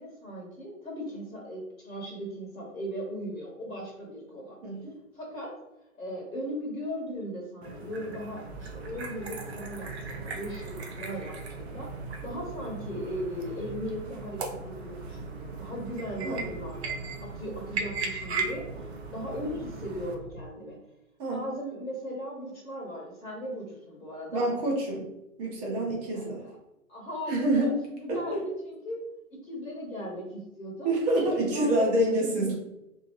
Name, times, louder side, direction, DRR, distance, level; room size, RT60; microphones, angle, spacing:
voice 1, 0.0-4.6 5.1-5.5 6.0-11.9 12.2-16.8 17.2-18.7 19.1-20.8 21.3-24.5 26.1-26.5 26.9-29.0 29.3-30.9 31.3-31.9, equal, 75° left, -2 dB, 1.2 m, -38 dB
voice 2, 4.6-4.9 16.2-16.4 21.2-21.4 24.3-25.0 25.4-26.4 27.3-27.7 28.1-28.4 30.8-32.5, right 1 dB, 30° right, -2 dB, 1.0 m, -27 dB
sound 1, 7.6-20.2, right 4 dB, 50° right, 0.6 m, -38 dB
sound 2, 8.5-20.4, right 4 dB, 5° right, 0.9 m, -44 dB
2.7 x 2.7 x 2.8 m, 0.88 s
figure-of-eight pair, 120°, 42 cm